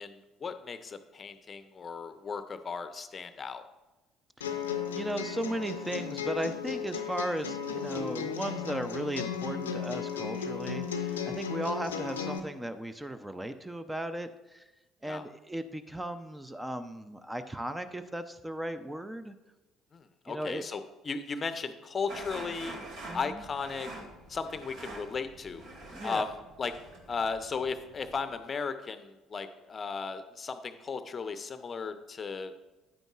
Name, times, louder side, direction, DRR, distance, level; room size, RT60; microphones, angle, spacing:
voice 1, 0.0-3.6 15.0-15.2 19.9-22.8 23.1-23.9 24.3-25.6 26.0-26.8 27.1-32.5, left 5 dB, 35° left, 10 dB, 0.6 m, -36 dB
sound 1, 4.4-12.4, left 6 dB, 80° left, 0.5 m, -35 dB
voice 2, 4.9-14.7 15.0-19.3 20.3-20.6 23.1-23.4 25.9-26.2, right 1 dB, 10° right, 10 dB, 0.5 m, -36 dB
sound 2, 22.1-28.4, right 1 dB, 60° right, 1.8 m, -46 dB
10.0 x 8.9 x 2.4 m, 1.1 s
figure-of-eight pair, 55°, 0 cm